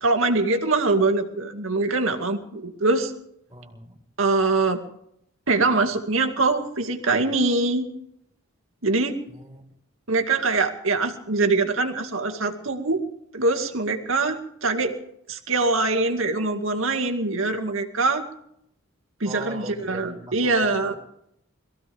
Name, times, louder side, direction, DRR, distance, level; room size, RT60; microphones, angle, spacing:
voice 1, 0.0-3.1 4.2-4.8 5.5-7.9 8.8-9.2 10.1-13.0 13.3-15.0 15.3-18.2 19.2-20.9, right 3 dB, 75° right, 4 dB, 2.2 m, -23 dB
voice 2, 3.5-4.0 9.3-9.7 19.2-21.0, right 1 dB, 15° right, 0 dB, 4.5 m, -40 dB
22.5 x 15.5 x 3.5 m, 0.73 s
head